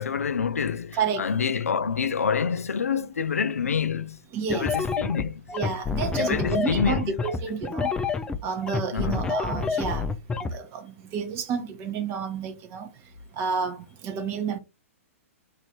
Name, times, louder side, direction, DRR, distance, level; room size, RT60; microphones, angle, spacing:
voice 1, 0.0-4.2 4.5-5.4 6.2-7.1 8.9-9.2, left 6 dB, 90° left, 0.3 m, -27 dB
voice 2, 0.9-1.2 4.3-4.8 5.5-7.9 8.4-10.1 10.5-12.9 13.4-14.6, right 6 dB, 35° right, 0.8 m, -30 dB
sound 1, 4.5-10.5, left 5 dB, 10° left, 0.3 m, -28 dB
3.0 x 2.6 x 2.9 m
hypercardioid pair, 125°, 8 cm